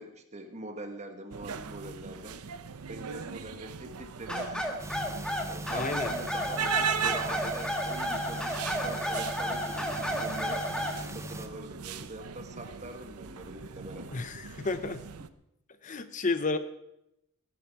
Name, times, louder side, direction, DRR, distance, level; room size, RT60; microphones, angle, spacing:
voice 1, 0.0-2.4 2.9-4.8 5.4-8.6 8.8-10.6 11.1-14.1, right 1 dB, 30° right, 6 dB, 1.6 m, -43 dB
sound 1, 1.3-15.3, right 6 dB, 85° right, 0.7 m, -38 dB
sound 2, 4.3-11.0, equal, 5° left, 1.6 m, -32 dB
sound 3, 4.8-11.5, right 1 dB, 15° right, 0.7 m, -41 dB
voice 2, 5.7-6.1 14.1-15.0 15.8-16.6, left 3 dB, 35° left, 11 dB, 0.6 m, -31 dB
18.0 x 11.5 x 4.6 m, 0.84 s
head